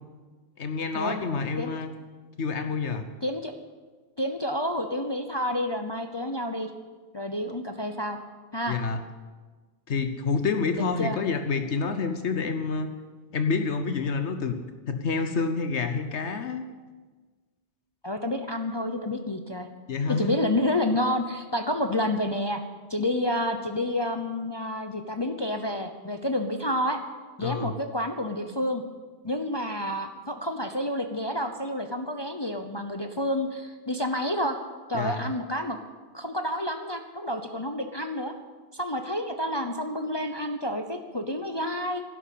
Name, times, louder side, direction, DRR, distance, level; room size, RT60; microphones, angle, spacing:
voice 1, 0.6-1.9 2.4-3.0 8.7-9.0 9.9-12.9 13.3-14.5 14.9-16.7 19.9-20.3 27.4-27.7 34.9-35.3, left 4 dB, 75° left, 8 dB, 1.3 m, -28 dB
voice 2, 3.2-3.5 4.2-6.7 7.1-8.2 8.5-8.8 10.8-11.2 18.0-19.7 20.2-22.6 22.9-27.0 27.4-28.8 29.2-34.6 34.9-35.8 36.1-38.3 38.7-42.0, left 1 dB, 25° left, 6 dB, 0.8 m, -29 dB
12.0 x 11.5 x 8.5 m, 1.3 s
omnidirectional pair, 1.2 m